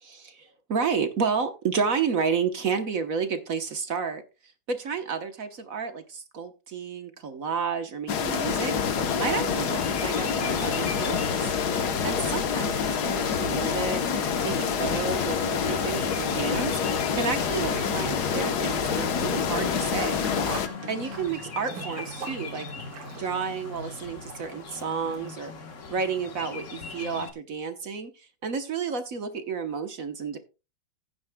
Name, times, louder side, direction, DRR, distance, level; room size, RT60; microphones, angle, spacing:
voice 1, 0.0-4.2 4.7-11.5 12.0-14.0 14.4-20.3 20.9-22.7 23.1-25.5 25.9-30.4, right 5 dB, 50° right, 8 dB, 1.3 m, -31 dB
sound 1, 8.1-20.7, left 6 dB, 60° left, 1.5 m, -27 dB
sound 2, 9.0-27.3, left 4 dB, 45° left, 1.5 m, -39 dB
Sink (filling or washing), 19.9-24.8 25.1-25.2 26.2-26.3 26.7-26.8, right 6 dB, 75° right, 2.0 m, -42 dB
15.5 x 9.4 x 2.2 m, 0.30 s
omnidirectional pair, 2.1 m